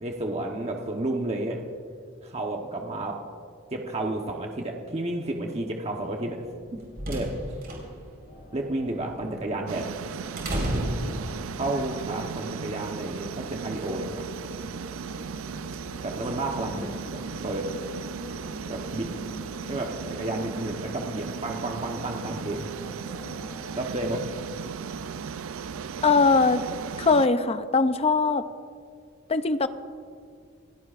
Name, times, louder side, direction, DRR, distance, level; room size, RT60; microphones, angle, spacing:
voice 1, 0.0-1.6 2.2-3.2 3.7-6.4 6.7-7.3 8.5-9.9 11.6-14.2 16.0-17.7 18.7-19.1 19.6-22.7 23.7-24.2, right 2 dB, 30° right, 1 dB, 1.1 m, -31 dB
sound 1, 6.5-11.7, equal, 50° right, 4.5 m, -33 dB
sound 2, 8.3-23.8, left 1 dB, 65° left, 1.8 m, -46 dB
sound 3, 9.7-27.3, right 6 dB, 80° right, 0.4 m, -36 dB
voice 2, 26.0-26.6 27.0-28.4 29.3-29.7, left 4 dB, 30° left, 11 dB, 0.5 m, -21 dB
28.0 x 16.5 x 2.5 m, 2.2 s
head